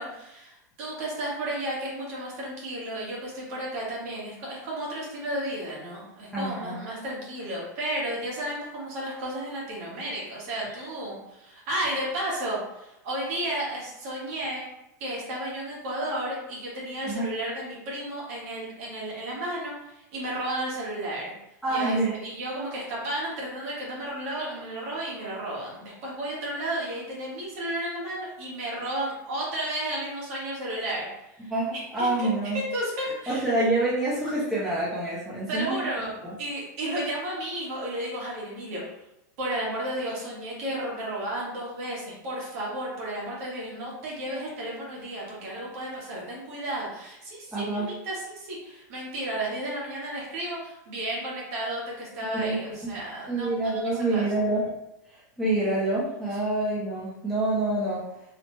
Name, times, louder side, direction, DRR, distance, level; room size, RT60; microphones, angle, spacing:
voice 1, 0.0-14.7 15.0-21.3 21.7-31.1 31.4-31.5 32.0-32.3 32.5-33.5 35.5-36.1 36.4-38.8 39.4-53.7 54.1-54.3, right 1 dB, 50° right, -5 dB, 1.2 m, -33 dB
voice 2, 6.3-6.8 17.0-17.3 21.6-22.1 31.4-32.6 33.3-35.9 36.2-36.3 47.5-47.8 52.3-52.6 52.8-53.0 53.3-54.7 55.1-58.0, right 2 dB, ahead, -9 dB, 0.5 m, -27 dB
3.2 x 2.0 x 3.0 m, 0.87 s
supercardioid pair, 165°, 10 cm